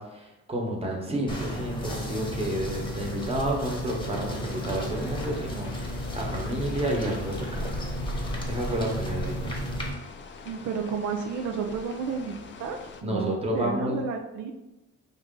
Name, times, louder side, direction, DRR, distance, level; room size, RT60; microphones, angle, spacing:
voice 1, 0.0-7.7 8.5-9.6 13.0-14.0, right 1 dB, 20° right, -1 dB, 1.1 m, -30 dB
sound 1, 1.3-9.9, equal, 15° left, 1.0 m, -33 dB
sound 2, 4.3-13.0, left 5 dB, 40° left, 0.5 m, -45 dB
voice 2, 10.4-12.3 12.6-14.5, right 6 dB, 75° right, 3 dB, 0.5 m, -31 dB
4.8 x 2.7 x 3.7 m, 1.0 s
cardioid pair, 90°, 30 cm